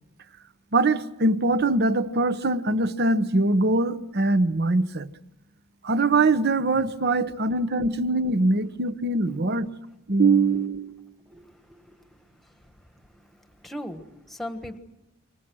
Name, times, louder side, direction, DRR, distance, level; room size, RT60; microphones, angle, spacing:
voice 1, 0.7-5.1 5.8-9.7 10.1-11.1, right 2 dB, 45° right, 0.9 m, -22 dB
voice 2, 11.3-12.0 12.6-12.7 13.6-14.8, left 1 dB, ahead, 1.4 m, -38 dB
28.0 x 24.5 x 6.2 m
head